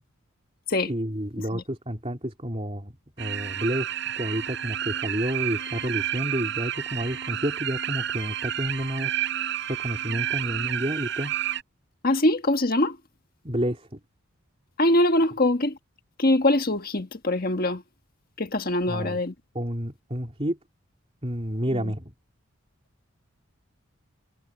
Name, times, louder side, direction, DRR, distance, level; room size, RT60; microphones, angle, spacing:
voice 1, 0.8-2.9 3.2-3.9 4.2-9.1 9.7-11.3 13.4-14.0 18.9-19.2 19.5-20.6 21.2-22.1, equal, 30° right, 3.4 m, -30 dB
sound 1, 3.2-11.6, right 11 dB, 60° right, 4.4 m, -30 dB
voice 2, 12.0-13.0 14.8-15.8 16.2-17.8 18.4-19.3 21.7-21.9, left 1 dB, 45° left, 1.6 m, -23 dB
head